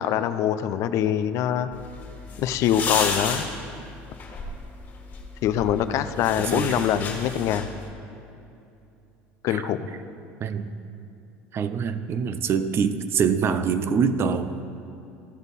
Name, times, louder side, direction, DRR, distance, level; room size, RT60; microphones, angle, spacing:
voice 1, 0.0-1.7 2.4-3.4 5.4-7.7 9.4-9.9, left 10 dB, 60° left, 11 dB, 0.5 m, -24 dB
sound 1, 1.7-7.9, left 4 dB, 35° left, 1.8 m, -33 dB
voice 2, 6.4-6.8 9.5-9.6 10.4-10.7 11.5-14.5, right 6 dB, 45° right, 12 dB, 0.5 m, -25 dB
14.5 x 5.2 x 4.1 m, 2.7 s
supercardioid pair, 95°, 6 cm